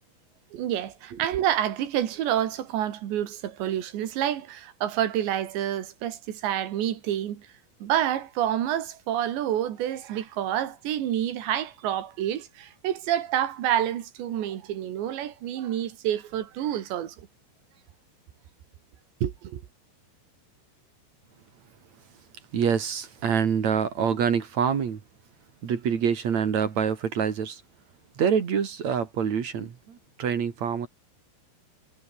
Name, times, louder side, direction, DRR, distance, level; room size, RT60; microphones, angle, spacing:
voice 1, 0.5-7.5 7.8-17.2 19.2-19.6, right 11 dB, 90° right, 4.4 m, -28 dB
voice 2, 22.5-25.0 25.6-27.6 28.2-30.9, right 7 dB, 50° right, 3.0 m, -26 dB
omnidirectional pair, 4.9 m